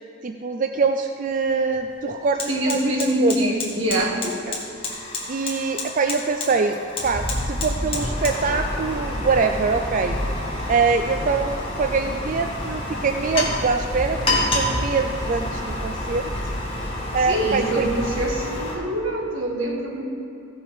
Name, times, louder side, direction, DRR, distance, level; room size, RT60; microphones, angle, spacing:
voice 1, 0.2-2.9 3.2-3.5 4.5-4.6 5.3-6.8 7.0-10.2 10.7-16.3 17.1-17.9, right 4 dB, 40° right, 5 dB, 0.4 m, -24 dB
Fire, 1.3-1.4 1.7-18.7, left 2 dB, 30° left, 1.7 m, -30 dB
voice 2, 2.5-4.4 17.3-20.0, right 1 dB, 80° right, 0 dB, 1.6 m, -24 dB
sound 1, 7.0-18.3, equal, 20° right, 2.9 m, -31 dB
15.5 x 5.8 x 5.4 m, 2.8 s
head